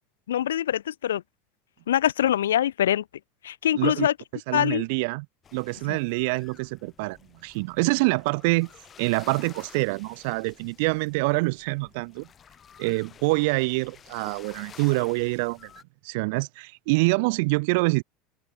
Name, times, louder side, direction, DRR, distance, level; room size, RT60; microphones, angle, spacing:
voice 1, 0.3-1.2 1.9-3.0 3.4-4.1 4.5-4.8 5.9-6.0, left 11 dB, 85° left, 1.4 m, -24 dB
voice 2, 3.7-4.1 4.5-5.2 5.5-8.7 9.0-12.3 12.8-15.7 16.0-18.0, right 28 dB, 70° right, 1.3 m, -26 dB
sound 1, 5.4-15.8, left 8 dB, 35° left, 5.0 m, -51 dB
hypercardioid pair, 80°, 0 cm